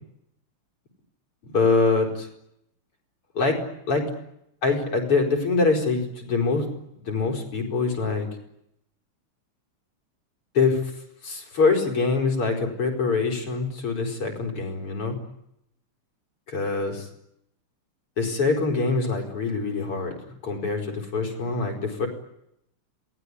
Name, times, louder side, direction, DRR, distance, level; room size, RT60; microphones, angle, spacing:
voice 1, 1.4-2.3 3.4-3.6 3.9-4.1 4.6-6.7 7.1-8.3 10.5-10.9 11.2-15.2 16.5-17.1 18.2-20.2 20.4-22.1, left 4 dB, 85° left, 3 dB, 5.6 m, -24 dB
28.5 x 20.5 x 9.9 m, 0.80 s
omnidirectional pair, 2.4 m